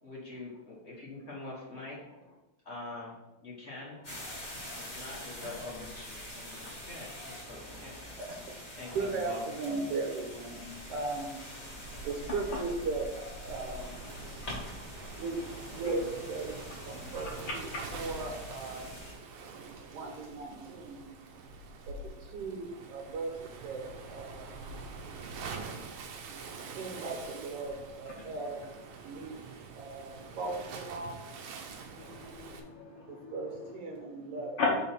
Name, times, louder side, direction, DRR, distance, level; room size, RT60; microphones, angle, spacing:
voice 1, 0.0-2.0 2.6-3.2 3.4-4.0 4.8-8.0 8.8-9.4, left 2 dB, 45° left, -5 dB, 0.9 m, -44 dB
sound 1, 4.0-19.1, left 1 dB, 20° left, 1.4 m, -44 dB
voice 2, 7.4-8.3 8.9-14.7 14.9-16.6 16.8-17.6 17.9-18.9 19.9-21.1 21.9-23.8 24.1-24.5 26.7-28.6 29.0-31.2 33.0-34.6, right 3 dB, 65° right, -1 dB, 1.7 m, -38 dB
Waves surf, 13.5-32.6, right 4 dB, 80° right, 2.3 m, -45 dB
voice 3, 17.2-17.8 32.0-34.0 34.6-34.8, left 3 dB, 70° left, -2 dB, 1.3 m, -36 dB
5.6 x 3.9 x 5.9 m, 0.99 s
omnidirectional pair, 3.5 m